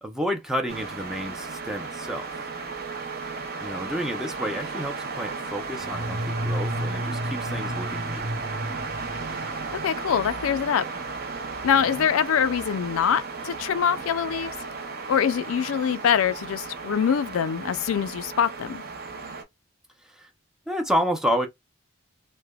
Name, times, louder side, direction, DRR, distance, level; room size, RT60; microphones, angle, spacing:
voice 1, 0.0-2.3 3.6-8.3 12.0-12.1 20.1-20.3 20.7-21.5, equal, 5° right, 0.5 m, -30 dB
sound 1, 0.7-19.4, right 4 dB, 45° right, 0.6 m, -35 dB
sound 2, 5.7-9.9, equal, 90° right, 0.9 m, -32 dB
voice 2, 9.8-10.8 11.6-14.5 15.1-18.8, left 8 dB, 80° left, 0.3 m, -24 dB
3.2 x 2.1 x 2.2 m
head